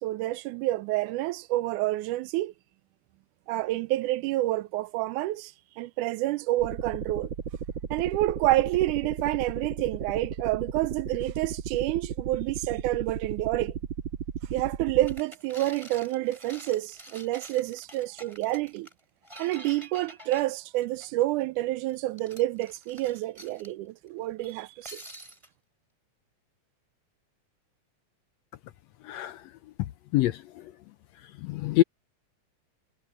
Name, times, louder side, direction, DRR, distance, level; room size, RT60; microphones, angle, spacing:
voice 1, 0.0-2.5 3.5-7.3 7.9-13.8 14.5-18.9 19.4-25.0, right 16 dB, 85° right, 2.1 m, -28 dB
sound 1, 6.6-15.2, right 7 dB, 50° right, 1.6 m, -35 dB
sound 2, 15.1-21.4 21.9-23.7 24.4-25.5, right 1 dB, 10° right, 3.7 m, -48 dB
voice 2, 29.0-29.5 30.1-30.7 31.2-31.8, left 16 dB, 80° left, 1.6 m, -26 dB
omnidirectional pair, 3.6 m